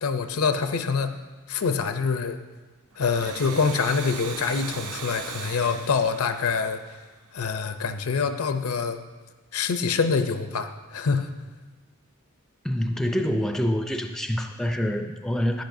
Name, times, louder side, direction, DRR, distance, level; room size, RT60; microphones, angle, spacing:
voice 1, 0.0-1.2 1.5-2.4 3.0-6.8 7.3-9.0 9.5-11.3, left 5 dB, 75° left, 8 dB, 0.6 m, -25 dB
Domestic sounds home sounds, 2.9-7.4, right 5 dB, 80° right, 0.8 m, -38 dB
voice 2, 12.6-15.6, equal, ahead, 5 dB, 0.4 m, -26 dB
10.5 x 10.5 x 2.6 m, 1.3 s
head